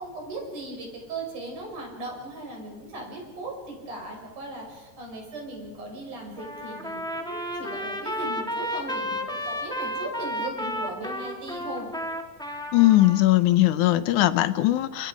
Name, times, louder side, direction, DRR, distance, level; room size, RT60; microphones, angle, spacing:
voice 1, 0.0-11.9, right 2 dB, 90° right, 1 dB, 7.7 m, -38 dB
Trumpet, 6.4-13.2, equal, ahead, 1.0 m, -32 dB
voice 2, 12.7-15.1, left 15 dB, 80° left, 13 dB, 2.3 m, -20 dB
29.5 x 28.0 x 5.2 m, 1.4 s
omnidirectional pair, 3.5 m